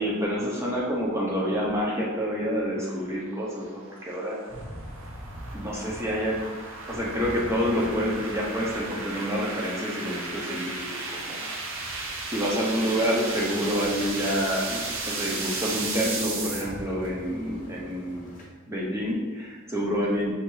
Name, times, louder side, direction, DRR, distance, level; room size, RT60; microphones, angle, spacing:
voice 1, 0.0-4.4 5.5-6.4 6.9-11.5 12.3-18.3 18.7-20.3, equal, 15° right, -4 dB, 0.6 m, -28 dB
sound 1, 2.7-16.6, right 3 dB, 75° right, 0.7 m, -35 dB
sound 2, 4.5-18.5, equal, 40° left, 0.8 m, -45 dB
5.3 x 2.5 x 3.1 m, 1.4 s
head